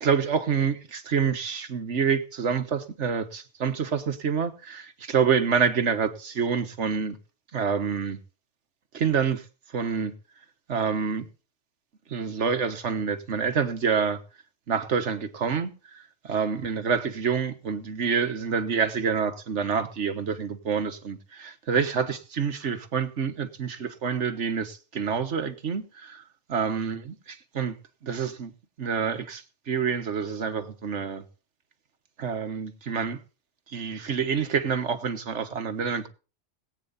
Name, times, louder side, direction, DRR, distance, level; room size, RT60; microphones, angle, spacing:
voice 1, 0.0-7.2 7.5-8.2 8.9-9.4 9.7-10.1 10.7-11.3 12.1-14.2 14.7-26.2 26.5-27.7 28.0-28.5 28.8-31.2 32.2-33.2 33.7-36.1, right 6 dB, 65° right, 1.5 m, -27 dB
19.0 x 9.0 x 4.1 m
omnidirectional pair, 1.3 m